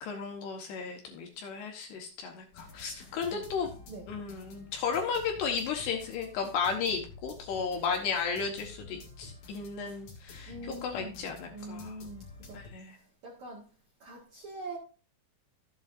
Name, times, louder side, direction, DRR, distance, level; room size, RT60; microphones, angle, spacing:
voice 1, 0.0-3.7 4.1-12.0 12.5-13.0, left 6 dB, 70° left, 3.0 m, -34 dB
sound 1, 2.5-12.7, left 3 dB, 50° left, 2.5 m, -50 dB
voice 2, 10.5-11.2 11.5-12.6 13.2-13.7 14.0-14.8, right 1 dB, 55° right, 2.2 m, -43 dB
13.5 x 8.0 x 2.5 m
omnidirectional pair, 5.6 m